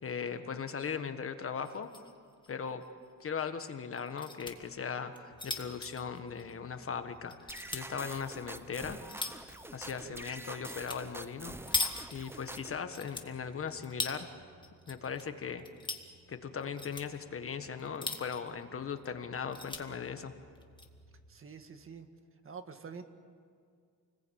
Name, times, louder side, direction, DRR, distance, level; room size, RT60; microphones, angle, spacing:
voice 1, 0.0-1.9 2.5-2.8 3.2-9.0 9.4-14.3 14.9-15.7 16.3-20.3, left 6 dB, 40° left, 8 dB, 1.5 m, -39 dB
sound 1, 1.6-2.1 2.4-2.5 2.8-2.9 3.9-4.5 5.1-6.9 7.3-7.8 8.5-9.5 10.7-11.0 11.3-12.6 12.9-14.2 14.6-15.2 15.5-16.1 16.6-17.1 17.8-18.5 19.0-19.1 19.3-19.8 20.5-20.9, left 3 dB, 15° left, 1.8 m, -39 dB
sound 2, 5.3-21.3, right 1 dB, 80° left, 3.0 m, -63 dB
sound 3, 7.5-12.8, right 1 dB, 5° right, 0.8 m, -46 dB
voice 2, 21.3-22.1 22.4-23.0, right 5 dB, 40° right, 7 dB, 1.8 m, -47 dB
29.0 x 20.5 x 8.7 m, 2.1 s
cardioid pair, 145°, 33 cm